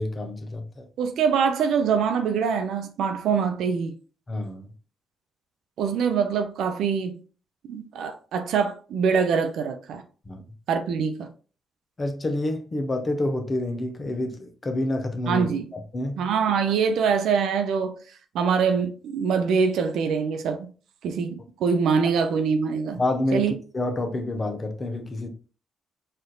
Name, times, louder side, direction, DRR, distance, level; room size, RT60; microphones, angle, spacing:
voice 1, 0.0-0.8 4.3-4.7 10.3-10.4 12.0-16.2 23.0-25.3, left 2 dB, 35° left, 0.7 m, -28 dB
voice 2, 1.0-3.9 5.8-7.2 7.7-10.0 10.7-11.3 15.3-15.7 16.2-18.0 18.3-20.7 21.0-21.3 21.6-23.0 23.3-23.5, right 6 dB, 70° right, 0.5 m, -24 dB
4.3 x 2.5 x 2.3 m
hypercardioid pair, 40°, 0 cm